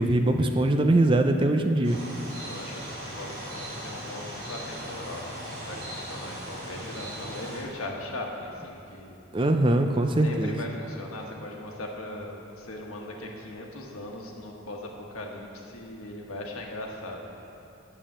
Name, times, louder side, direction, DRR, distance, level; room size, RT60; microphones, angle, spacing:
voice 1, 0.0-2.0 9.3-10.6, right 1 dB, 25° right, 6 dB, 0.4 m, -22 dB
sound 1, 1.8-7.6, equal, 45° right, 2.9 m, -38 dB
voice 2, 2.4-9.2 10.2-17.2, left 1 dB, 85° left, 0 dB, 1.3 m, -39 dB
8.9 x 7.1 x 7.3 m, 2.8 s
head